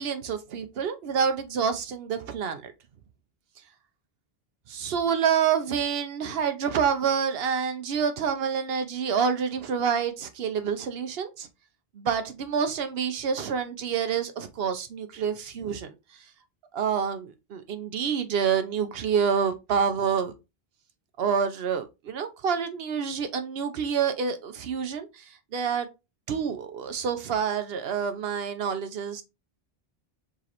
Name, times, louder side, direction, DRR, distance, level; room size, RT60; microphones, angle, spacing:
voice 1, 0.0-2.7 4.7-11.5 11.9-15.9 16.7-20.3 21.2-25.9 26.3-29.2, right 7 dB, 75° right, 0.9 m, -27 dB
4.6 x 3.2 x 2.9 m
omnidirectional pair, 1.0 m